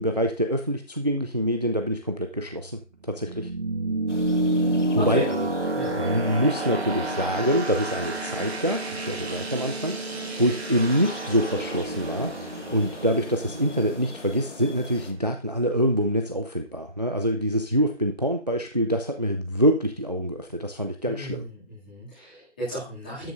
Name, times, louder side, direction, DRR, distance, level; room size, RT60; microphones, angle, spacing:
voice 1, 0.0-2.8 3.1-3.5 5.1-5.2 6.0-21.4, equal, 35° right, 5 dB, 0.6 m, -25 dB
sound 1, 2.2-14.8, right 2 dB, 60° right, 1.6 m, -30 dB
sound 2, 4.1-15.1, left 3 dB, 80° left, 1.8 m, -41 dB
voice 2, 4.9-5.5 5.7-6.0 21.0-23.3, right 1 dB, 5° left, -11 dB, 2.3 m, -34 dB
12.5 x 7.6 x 2.5 m, 0.34 s
figure-of-eight pair, 180°, 36 cm